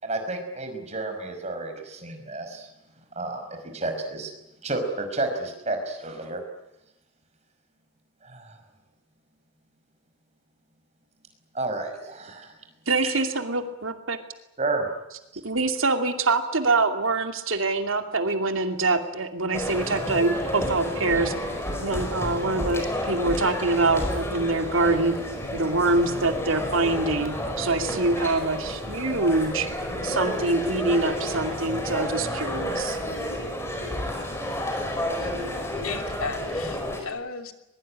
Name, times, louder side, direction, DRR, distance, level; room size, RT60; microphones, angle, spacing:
voice 1, 0.0-2.7 3.2-3.4 3.7-4.3 4.6-6.4 8.2-8.6 11.5-12.5 13.0-13.2 14.6-14.9, right 2 dB, 30° right, 5 dB, 5.4 m, -31 dB
voice 2, 12.9-14.2 15.4-21.3 21.8-25.2 25.5-29.7 30.0-33.0, right 3 dB, 75° right, 6 dB, 2.6 m, -25 dB
sound 1, 19.5-37.0, left 1 dB, 10° left, 4.9 m, -30 dB
voice 3, 35.8-37.5, left 5 dB, 90° left, 6 dB, 2.9 m, -35 dB
22.5 x 22.5 x 9.8 m, 0.90 s
head